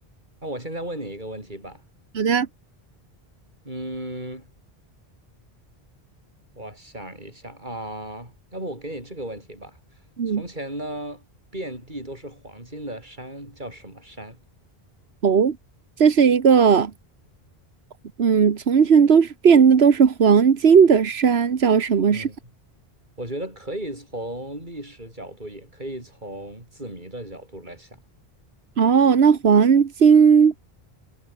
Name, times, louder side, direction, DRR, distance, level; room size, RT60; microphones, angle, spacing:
voice 1, 0.4-1.8 3.6-4.5 6.5-9.8 10.3-11.3 11.5-14.4 22.1-22.4 23.2-28.0, right 1 dB, 50° right, 8.2 m, -35 dB
voice 2, 2.1-2.5 10.2-10.4 15.2-15.6 16.0-16.9 18.2-22.3 28.8-30.5, right 6 dB, 90° right, 1.5 m, -16 dB
omnidirectional pair, 1.0 m